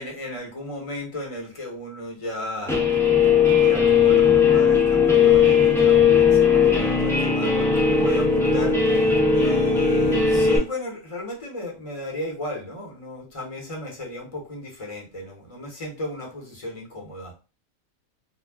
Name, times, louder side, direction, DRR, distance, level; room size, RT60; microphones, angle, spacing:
voice 1, 0.0-2.8 3.6-17.3, left 1 dB, 30° left, 0 dB, 0.9 m, -35 dB
Guitar, 2.7-10.6, left 6 dB, 5° left, 0.4 m, -18 dB
2.3 x 2.2 x 3.4 m, 0.33 s
omnidirectional pair, 1.3 m